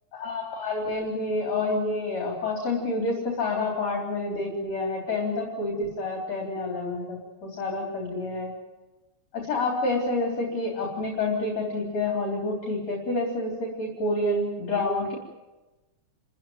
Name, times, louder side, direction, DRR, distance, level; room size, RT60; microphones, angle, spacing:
voice 1, 0.1-8.5 9.3-15.2, left 2 dB, 45° left, -1 dB, 4.6 m, -28 dB
29.0 x 15.0 x 9.3 m, 1.1 s
omnidirectional pair, 4.2 m